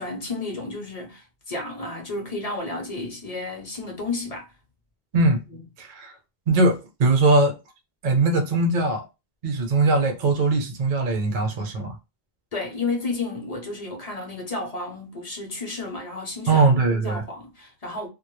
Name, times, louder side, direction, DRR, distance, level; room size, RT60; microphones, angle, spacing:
voice 1, 0.0-4.5 12.5-18.1, left 3 dB, 40° left, 0.7 m, -32 dB
voice 2, 5.8-6.1 6.5-7.6 8.0-9.1 9.4-12.0 16.5-17.2, right 3 dB, 55° right, 0.7 m, -21 dB
2.1 x 2.1 x 2.9 m
omnidirectional pair, 1.0 m